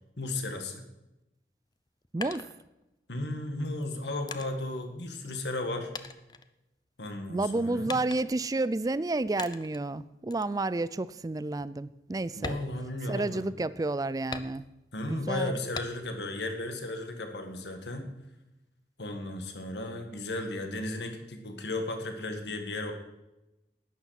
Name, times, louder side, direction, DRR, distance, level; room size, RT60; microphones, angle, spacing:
voice 1, 0.2-0.8 3.1-5.9 7.0-7.9 12.3-13.5 14.9-18.1 19.0-22.9, left 2 dB, 80° left, 5 dB, 1.9 m, -35 dB
sound 1, 1.7-3.2 3.8-5.7 5.9-7.1 7.9-8.5 9.4-9.9 10.3-10.6 11.0-11.1 11.5-11.7 12.3-13.5 14.3-15.0 15.7-16.3 16.7-17.5, left 4 dB, 25° left, 0.6 m, -42 dB
voice 2, 7.3-12.6 13.1-14.6 15.1-15.5, right 2 dB, 20° right, 17 dB, 0.3 m, -30 dB
11.5 x 9.5 x 5.9 m, 0.96 s
head